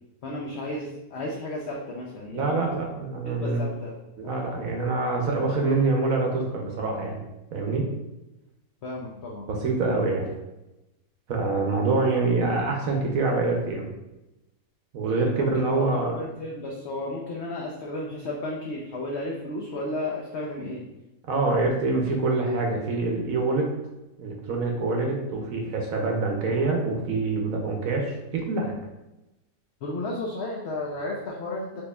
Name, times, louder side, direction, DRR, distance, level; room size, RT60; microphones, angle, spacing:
voice 1, 0.2-2.6 3.2-3.9 4.2-4.3 8.8-9.5 15.4-20.8 29.8-31.8, left 2 dB, 85° left, -2 dB, 0.5 m, -33 dB
voice 2, 2.3-3.6 4.2-7.2 7.5-7.9 9.5-10.3 11.3-13.9 14.9-16.2 21.3-23.7 24.2-28.8, right 3 dB, 65° right, 1 dB, 0.9 m, -25 dB
4.4 x 2.9 x 2.2 m, 0.96 s
omnidirectional pair, 1.7 m